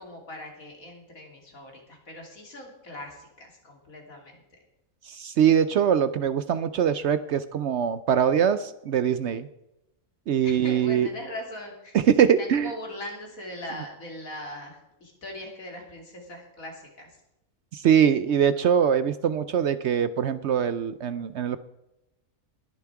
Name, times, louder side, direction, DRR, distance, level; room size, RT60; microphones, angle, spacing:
voice 1, 0.0-4.4 10.4-12.0 12.4-17.1, left 1 dB, 75° left, 1 dB, 3.3 m, -40 dB
voice 2, 5.1-9.5 10.3-11.1 11.9-12.7 17.7-21.6, right 8 dB, 65° right, 13 dB, 0.8 m, -22 dB
20.5 x 7.2 x 4.7 m, 0.88 s
omnidirectional pair, 1.5 m